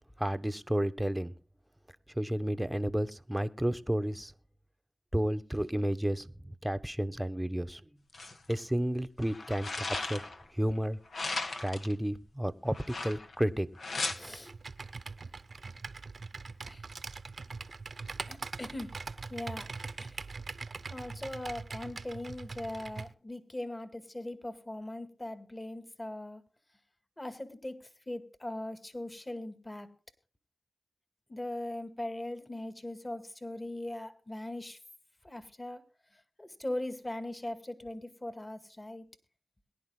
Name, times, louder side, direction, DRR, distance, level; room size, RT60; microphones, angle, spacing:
voice 1, 0.2-1.3 2.2-4.3 5.1-7.8 8.5-10.3 10.5-11.0 11.6-13.7 14.4-14.6, equal, 5° right, 12 dB, 1.1 m, -32 dB
sound 1, 8.1-8.5 9.2-10.4 11.1-11.9 12.7-13.4 13.8-14.1, left 3 dB, 75° left, 1.8 m, -36 dB
voice 2, 14.1-14.5 16.6-16.9 18.3-18.9 19.3-19.7 20.0-20.2 20.9-26.4 27.2-27.8 28.1-29.9 31.3-34.8 35.2-35.8 36.1-39.1, left 1 dB, 25° left, 10 dB, 2.1 m, -40 dB
Computer keyboard, 14.1-23.1, right 4 dB, 65° right, 1.0 m, -42 dB
22.0 x 10.5 x 2.2 m, 0.37 s
cardioid pair, 50°, 0 cm